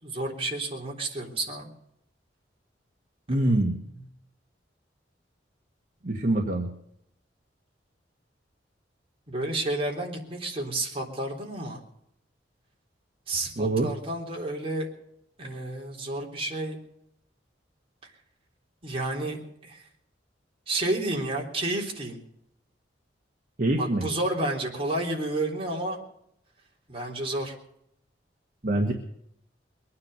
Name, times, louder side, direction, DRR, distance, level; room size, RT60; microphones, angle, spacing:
voice 1, 0.0-1.7 3.3-3.6 9.3-11.8 13.3-14.9 15.4-16.8 18.8-19.8 20.7-22.2 23.8-26.0 26.9-27.5, right 2 dB, 30° right, -1 dB, 3.6 m, -31 dB
voice 2, 3.3-3.7 6.0-6.7 13.6-13.9 23.6-24.1 28.6-28.9, right 1 dB, 45° right, 1 dB, 1.7 m, -24 dB
22.5 x 9.7 x 6.6 m, 0.76 s
head